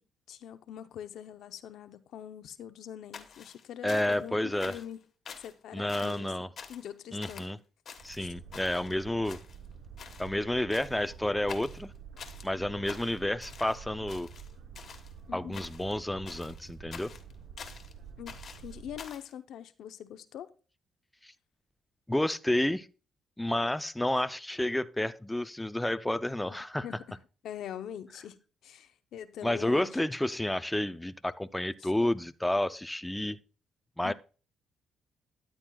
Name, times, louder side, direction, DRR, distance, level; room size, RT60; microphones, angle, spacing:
voice 1, 0.3-5.0 5.4-6.3 6.7-7.5 8.2-8.3 15.3-15.7 18.2-18.4 18.6-20.5 26.8-27.2 27.4-28.4 28.6-30.0 31.8-31.9 34.0-34.1, left 10 dB, 75° left, 0.7 m, -43 dB
sound 1, 3.1-4.3 4.6-5.0 5.3-5.6 5.9-6.3 6.6-6.9 7.2-7.5 7.9-8.9 9.2-9.7 10.0-10.3 10.7-11.1 11.5-12.5 12.9-13.8 14.1-15.1 15.5-16.0 16.3-17.9 18.3-19.3, left 6 dB, 55° left, 1.3 m, -47 dB
voice 2, 3.8-4.8 5.7-6.5 7.1-7.6 8.0-9.4 10.2-11.9 12.4-14.3 15.3-17.1 21.2-21.3 22.1-22.9 23.4-26.8 29.4-33.4 34.0-34.1, left 1 dB, 5° left, 0.5 m, -30 dB
Boat Water vehicle, 8.0-19.0, right 7 dB, 75° right, 0.9 m, -49 dB
13.0 x 9.1 x 2.3 m
cardioid pair, 90°, 0 cm